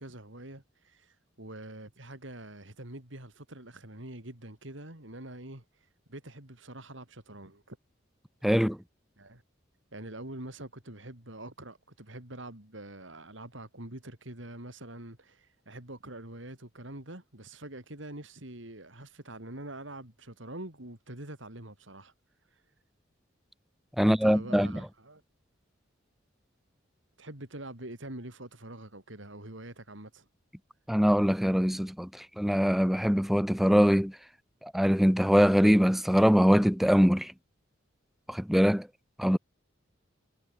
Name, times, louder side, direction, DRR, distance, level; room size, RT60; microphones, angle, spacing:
voice 1, 0.0-5.6 6.1-7.8 9.2-9.4 9.9-22.1 24.0-25.2 27.2-30.3, right 1 dB, 70° right, 4.5 m, -45 dB
voice 2, 8.4-8.8 24.0-24.7 30.9-34.1 34.6-37.3 38.3-38.9 39.2-39.4, equal, ahead, 0.5 m, -23 dB
head